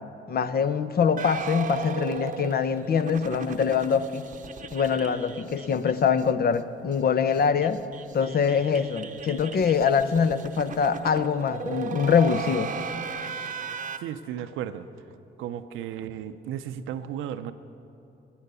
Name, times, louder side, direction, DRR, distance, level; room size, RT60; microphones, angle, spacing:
voice 1, 0.3-4.2 4.7-7.8 8.1-12.7, left 6 dB, 50° left, 12 dB, 0.8 m, -24 dB
sound 1, 1.2-6.3 6.5-6.6 6.9-7.0 7.3-14.0, right 6 dB, 40° right, 0.8 m, -37 dB
voice 2, 14.0-14.9 15.4-17.5, right 10 dB, 90° right, 10 dB, 0.6 m, -34 dB
19.5 x 9.0 x 6.8 m, 2.9 s
cardioid pair, 90°, 20 cm